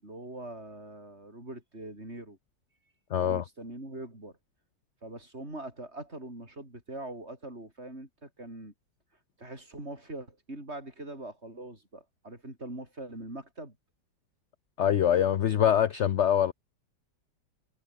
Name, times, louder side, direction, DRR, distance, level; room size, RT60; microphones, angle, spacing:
voice 1, 0.0-2.4 3.2-4.3 5.0-8.7 9.4-13.8, right 2 dB, 35° right, 8.0 m, -42 dB
voice 2, 3.1-3.4 14.8-16.5, left 9 dB, 65° left, 0.7 m, -24 dB
omnidirectional pair, 2.0 m